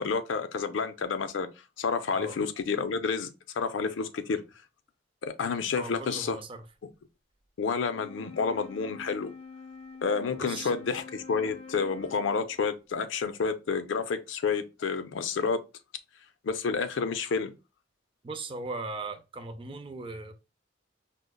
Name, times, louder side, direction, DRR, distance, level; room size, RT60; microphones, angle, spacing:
voice 1, 0.0-1.5 1.8-3.3 3.6-4.4 5.2-6.4 7.6-9.3 10.0-15.6 16.4-17.5, left 5 dB, 85° left, 0.4 m, -29 dB
voice 2, 5.7-6.6 10.4-10.7 18.2-20.3, right 3 dB, 30° right, 0.4 m, -38 dB
Wind instrument woodwind instrument, 7.8-12.6, left 4 dB, 35° left, 0.5 m, -46 dB
5.0 x 2.1 x 2.2 m
head